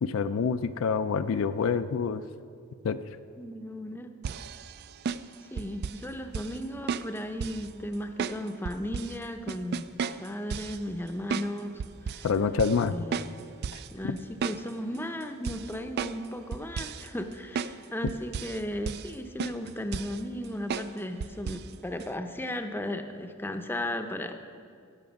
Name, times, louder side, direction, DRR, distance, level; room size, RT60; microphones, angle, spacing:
voice 1, 0.0-2.2 2.8-3.0 12.2-13.0 14.1-14.2, left 5 dB, 65° left, 11 dB, 0.4 m, -27 dB
voice 2, 3.4-4.1 5.5-9.9 10.2-12.3 12.9-13.4 13.9-24.4, left 1 dB, 10° left, 7 dB, 0.6 m, -35 dB
sound 1, 4.2-6.0 6.3-6.6 6.9-7.7 8.2-9.1 9.5-10.8 11.3-11.5 11.8-12.3 12.6-12.8 13.1-13.9 14.2-15.0 15.4-16.3 16.5-17.1 17.5-17.8 18.1-18.6 18.9-19.1 19.4-20.2 20.7-20.9 21.2-21.7 22.0-22.1, right 6 dB, 50° right, 0.3 m, -34 dB
16.0 x 6.8 x 5.3 m, 2.3 s
head